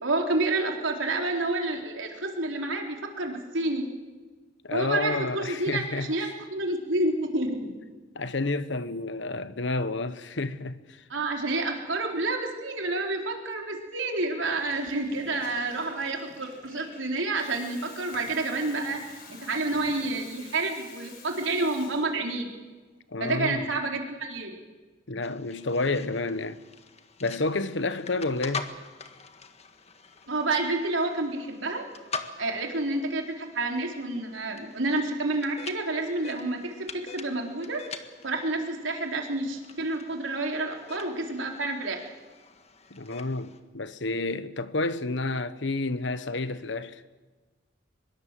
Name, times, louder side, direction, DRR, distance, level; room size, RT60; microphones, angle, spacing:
voice 1, 0.0-3.9 4.7-7.8 11.1-19.0 19.3-22.5 23.2-24.5 30.3-31.8 32.4-36.6 37.1-37.8 38.2-42.0, right 2 dB, 85° right, 4.0 m, -29 dB
voice 2, 4.6-6.3 8.1-11.0 23.1-23.7 25.1-26.6 27.2-28.7 42.9-47.0, left 3 dB, 70° left, 1.2 m, -30 dB
Water tap faucet / Toilet flush, 14.4-22.5, left 3 dB, 50° left, 6.2 m, -49 dB
sound 1, 25.2-43.6, left 4 dB, 35° left, 1.6 m, -44 dB
24.0 x 22.0 x 7.6 m
head